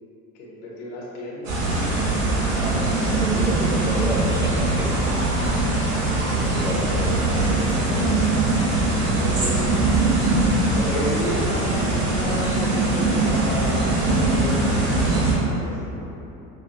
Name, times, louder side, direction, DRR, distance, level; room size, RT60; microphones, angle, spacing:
voice 1, 0.3-2.2 6.6-6.9 8.8-9.9 10.7-16.1, equal, 55° left, -4 dB, 1.2 m, -32 dB
sound 1, 1.4-15.3, right 2 dB, 60° right, 1.4 m, -21 dB
voice 2, 2.6-4.9 6.2-7.2 7.5-8.4, right 1 dB, 10° right, -2 dB, 0.3 m, -31 dB
6.4 x 2.2 x 2.8 m, 3.0 s
hypercardioid pair, 75°, 43 cm